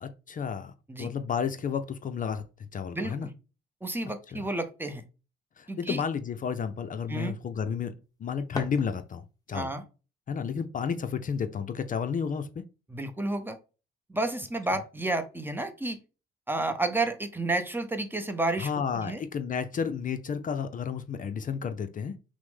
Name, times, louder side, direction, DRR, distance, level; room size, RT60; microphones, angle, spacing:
voice 1, 0.0-0.7 1.0-2.4 2.7-3.3 4.3-4.4 5.6-7.9 8.2-9.7 10.3-12.6 18.6-22.1, left 6 dB, 40° left, 0.5 m, -32 dB
voice 2, 2.9-3.3 3.8-5.0 5.7-6.0 7.1-7.3 9.5-9.8 12.9-13.6 14.1-16.0 16.5-18.7 18.9-19.2, right 2 dB, 10° right, 0.7 m, -31 dB
sound 1, 8.0-9.5, left 2 dB, 20° left, 0.9 m, -41 dB
5.9 x 2.1 x 3.5 m
cardioid pair, 90°, 20 cm